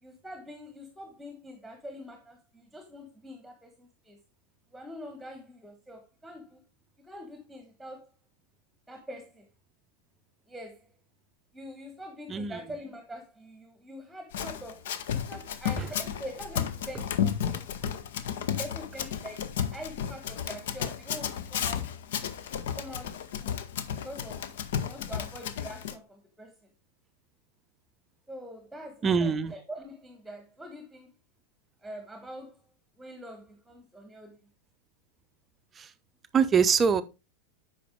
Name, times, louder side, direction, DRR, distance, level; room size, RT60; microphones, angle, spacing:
voice 1, 0.0-4.2 4.7-6.6 7.0-8.1 8.9-9.5 10.5-10.9 11.5-14.8 15.1-17.6 18.6-22.3 22.8-23.5 24.0-24.5 24.8-26.7 28.3-31.1 31.8-32.6 33.0-34.5, equal, 5° right, 1.2 m, -44 dB
voice 2, 12.3-12.6 15.8-15.9 17.5-18.0 29.0-29.5 35.7-35.9 36.3-37.0, right 6 dB, 20° right, 0.6 m, -25 dB
Run, 14.3-25.9, left 8 dB, 55° left, 0.7 m, -33 dB
8.4 x 5.5 x 3.5 m
figure-of-eight pair, 90°, 0 cm